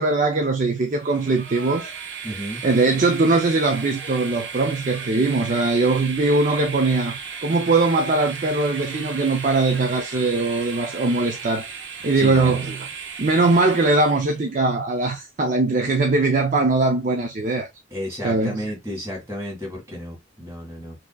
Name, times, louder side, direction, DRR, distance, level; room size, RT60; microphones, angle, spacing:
voice 1, 0.0-1.9 2.6-11.7 12.0-12.9 13.2-17.7 18.2-18.7, right 3 dB, 40° right, 0.5 m, -21 dB
Train, 0.9-14.4, right 6 dB, 60° right, 0.9 m, -35 dB
voice 2, 2.2-2.6 12.1-12.6 17.9-21.0, equal, 15° right, 1.8 m, -32 dB
4.9 x 2.8 x 2.3 m
head